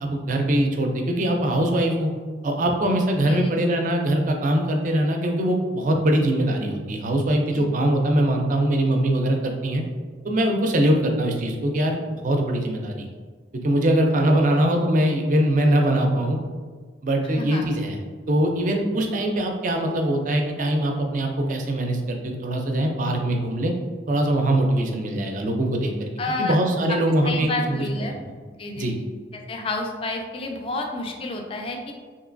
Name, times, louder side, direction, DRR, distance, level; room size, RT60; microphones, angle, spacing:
voice 1, 0.0-2.1 2.4-9.8 10.2-13.1 13.6-16.4 17.0-18.0 18.3-23.7 24.1-26.1 26.4-27.8 28.8-28.9, right 1 dB, 45° right, 3 dB, 0.4 m, -22 dB
voice 2, 17.4-17.7 26.2-26.6 27.2-28.2 28.6-29.1 29.3-31.9, left 2 dB, 30° left, 3 dB, 0.3 m, -30 dB
3.0 x 2.7 x 2.5 m, 1.5 s
head